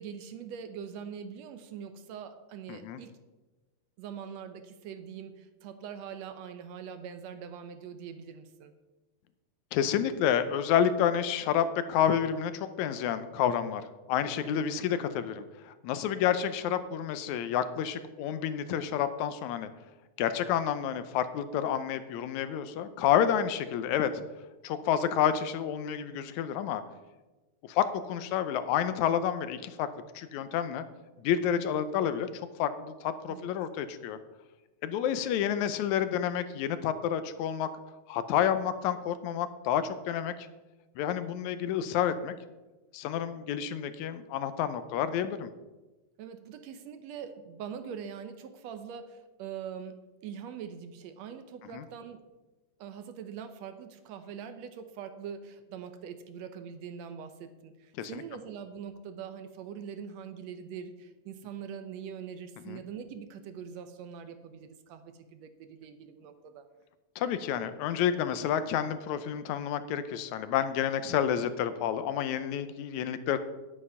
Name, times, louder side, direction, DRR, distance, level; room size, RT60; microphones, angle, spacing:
voice 1, 0.0-3.1 4.0-8.7 16.6-16.7 33.3-33.5 46.2-52.2 52.8-66.7, right 7 dB, 75° right, 9 dB, 1.8 m, -43 dB
voice 2, 2.7-3.0 9.7-19.7 20.2-24.2 24.6-26.8 27.7-29.9 30.2-30.8 31.2-32.3 32.6-34.2 34.8-37.7 38.1-40.3 41.0-42.3 42.9-45.5 51.7-51.8 58.0-58.2 62.7-62.8 67.2-73.4, left 9 dB, 85° left, 12 dB, 2.0 m, -29 dB
9.7 x 8.6 x 5.5 m, 1.1 s
omnidirectional pair, 3.3 m